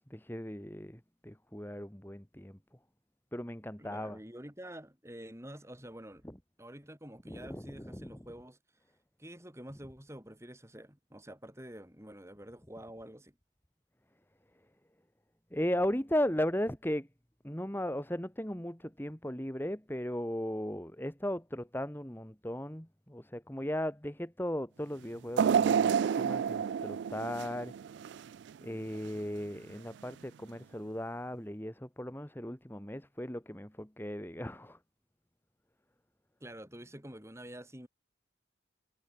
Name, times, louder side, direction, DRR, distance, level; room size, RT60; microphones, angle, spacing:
voice 1, 0.0-2.6 3.3-4.2 7.3-7.6 7.9-8.1 15.5-17.1 17.4-27.7 28.6-34.8, left 1 dB, 10° left, 2.4 m, -36 dB
voice 2, 3.8-6.2 6.6-8.6 9.2-13.4 36.4-37.9, right 1 dB, 15° right, 5.3 m, -48 dB
sound 1, 25.4-28.5 28.9-29.1 30.1-30.2, right 7 dB, 65° right, 0.3 m, -29 dB
head